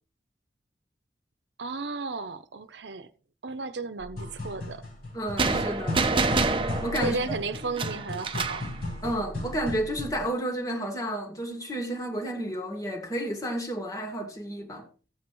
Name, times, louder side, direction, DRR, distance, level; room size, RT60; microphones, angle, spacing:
voice 1, 1.6-3.1 3.4-4.8 7.0-8.7, right 3 dB, 85° right, 0.8 m, -34 dB
sound 1, 4.0-10.3, left 1 dB, 60° left, 4.6 m, -36 dB
voice 2, 5.1-6.1 6.8-7.4 9.0-14.9, right 1 dB, 20° left, 2.1 m, -31 dB
sound 2, 5.4-8.7, right 3 dB, 30° right, 0.8 m, -27 dB
15.0 x 8.3 x 3.2 m
head